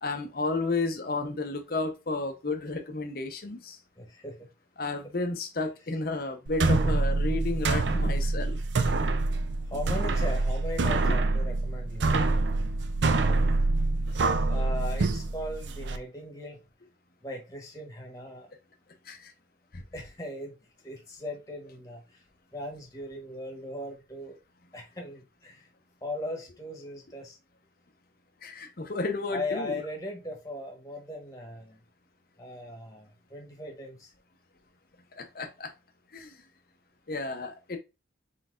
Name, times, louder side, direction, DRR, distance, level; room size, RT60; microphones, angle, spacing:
voice 1, 0.0-3.8 4.8-8.6 11.1-11.2 19.1-19.3 19.7-19.8 28.4-29.7 35.1-35.7 36.1-36.3 37.1-37.8, left 3 dB, 50° left, 0.7 m, -32 dB
voice 2, 4.0-4.3 9.7-12.1 13.3-13.5 14.5-16.6 17.2-18.5 19.9-20.6 20.8-22.0 22.5-24.3 24.7-25.7 26.0-27.4 29.3-31.8 32.4-34.1, left 1 dB, 15° left, 1.2 m, -38 dB
sound 1, 6.5-16.0, right 3 dB, 70° right, 0.5 m, -26 dB
4.1 x 4.0 x 2.4 m
head